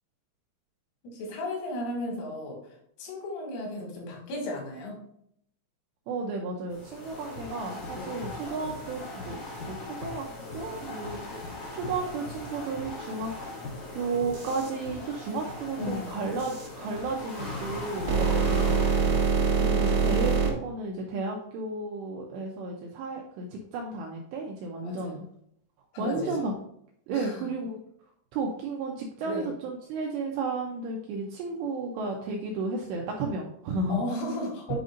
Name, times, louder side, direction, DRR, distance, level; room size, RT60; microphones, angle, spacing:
voice 1, 1.0-2.6 3.0-5.0 7.9-8.2 15.8-16.1 18.1-18.4 24.8-25.2 25.9-26.3 27.1-27.5 29.3-29.5 33.9-34.8, left 1 dB, 80° left, -1 dB, 4.5 m, -35 dB
voice 2, 6.1-13.3 13.9-25.2 26.0-26.5 27.1-27.8 28.3-34.0 34.7-34.8, right 3 dB, 85° right, 0 dB, 2.5 m, -33 dB
sound 1, 6.7-20.4, left 2 dB, 65° left, 1.5 m, -39 dB
sound 2, 14.3-14.7 16.4-16.7 17.5-20.5, right 5 dB, 70° right, 1.5 m, -24 dB
9.4 x 5.1 x 2.5 m, 0.71 s
omnidirectional pair, 5.9 m